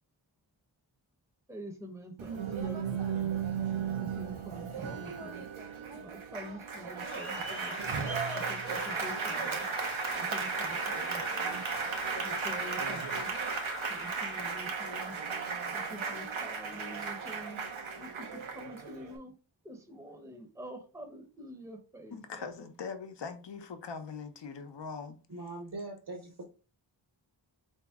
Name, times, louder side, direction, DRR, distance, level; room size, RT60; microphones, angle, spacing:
voice 1, 1.5-3.5 3.9-5.4 5.8-7.8 8.3-9.7 10.1-11.6 12.1-13.3 13.9-15.2 15.7-17.6 18.0-19.3 19.6-22.7, equal, 5° right, 0.7 m, -47 dB
Applause, 2.2-19.2, right 5 dB, 85° right, 0.7 m, -35 dB
sound 1, 7.0-14.6, left 3 dB, 30° left, 0.5 m, -43 dB
voice 2, 22.1-25.2, left 5 dB, 65° left, 0.7 m, -41 dB
voice 3, 25.3-26.4, right 2 dB, 55° right, 0.9 m, -41 dB
3.9 x 2.8 x 3.5 m
wide cardioid pair, 75°, 47 cm